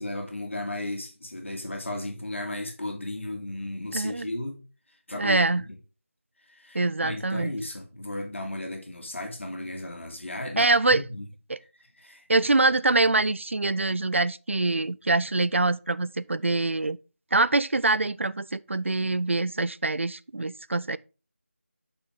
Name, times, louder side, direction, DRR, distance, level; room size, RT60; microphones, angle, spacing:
voice 1, 0.0-4.6 5.1-5.4 6.5-11.3 12.0-12.2, left 1 dB, 60° left, 2.2 m, -35 dB
voice 2, 3.9-4.3 5.1-5.6 6.7-7.5 10.6-11.0 11.5-11.6 12.3-17.0 17.3-21.0, right 2 dB, 60° right, 0.4 m, -24 dB
6.1 x 6.0 x 3.7 m
figure-of-eight pair, 175°, 7 cm